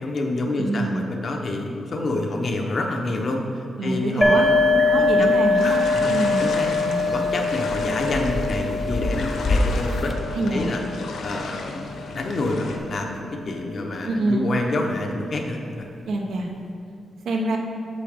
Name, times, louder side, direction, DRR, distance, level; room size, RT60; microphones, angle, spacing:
voice 1, 0.0-4.6 4.9-5.3 5.5-6.7 7.1-11.9 12.1-15.9, left 2 dB, 45° left, 2 dB, 0.8 m, -28 dB
voice 2, 0.6-1.1 3.8-5.8 6.1-6.4 6.8-7.0 10.3-10.7 14.0-14.5 16.1-16.5 17.2-17.6, right 2 dB, 85° right, 1 dB, 1.0 m, -25 dB
sound 1, 4.2-10.1, left 2 dB, 25° left, 0.4 m, -30 dB
sound 2, 4.2-11.7, left 3 dB, 5° left, 0.9 m, -23 dB
sound 3, 5.6-12.8, left 3 dB, 90° left, 0.7 m, -35 dB
8.3 x 6.7 x 3.6 m, 2.6 s
wide cardioid pair, 150°, 0 cm